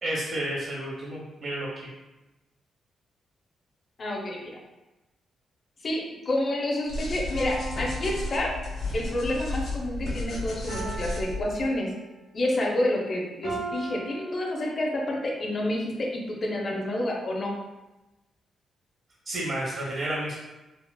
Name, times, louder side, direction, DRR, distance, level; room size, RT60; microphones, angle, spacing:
voice 1, 0.0-1.7 19.3-20.4, right 1 dB, 55° right, -4 dB, 0.6 m, -31 dB
voice 2, 4.0-4.6 5.8-8.5 8.9-11.9 12.3-17.5, left 1 dB, 40° left, -1 dB, 0.6 m, -29 dB
sound 1, 6.9-11.7, left 2 dB, 80° left, 1.1 m, -33 dB
sound 2, 7.3-9.2 10.7-12.3 13.4-15.1, right 3 dB, 85° right, 1.4 m, -39 dB
4.1 x 2.0 x 2.3 m, 1.0 s
cardioid pair, 120°, 0 cm